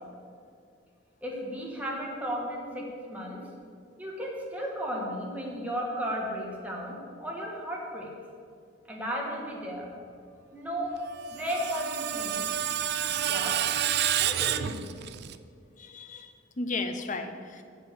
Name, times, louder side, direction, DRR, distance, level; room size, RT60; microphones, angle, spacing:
voice 1, 1.2-3.4 4.0-8.1 8.9-9.9 10.5-10.9 11.3-12.4 13.2-13.6 14.2-14.8, equal, 10° right, -3 dB, 1.7 m, -34 dB
Screech, 11.1-15.4, right 10 dB, 55° right, 0.4 m, -29 dB
voice 2, 15.8-17.6, left 3 dB, 40° left, 7 dB, 0.7 m, -35 dB
8.0 x 7.5 x 7.0 m, 2.3 s
head